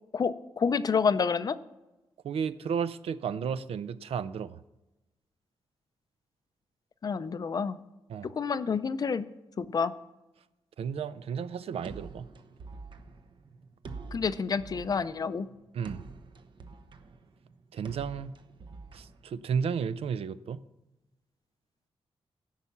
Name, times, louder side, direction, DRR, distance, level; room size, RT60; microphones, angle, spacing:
voice 1, 0.1-1.6 7.0-7.8 8.2-9.3 9.6-9.9 14.1-15.5, left 5 dB, 40° left, 14 dB, 0.4 m, -28 dB
voice 2, 2.2-4.6 8.1-8.3 10.8-12.3 15.7-16.0 17.7-18.4 18.9-20.6, right 6 dB, 75° right, 15 dB, 0.5 m, -33 dB
sound 1, 11.8-19.8, right 4 dB, 55° right, 0.8 m, -47 dB
13.5 x 5.6 x 7.1 m, 1.0 s
wide cardioid pair, 150°, 10 cm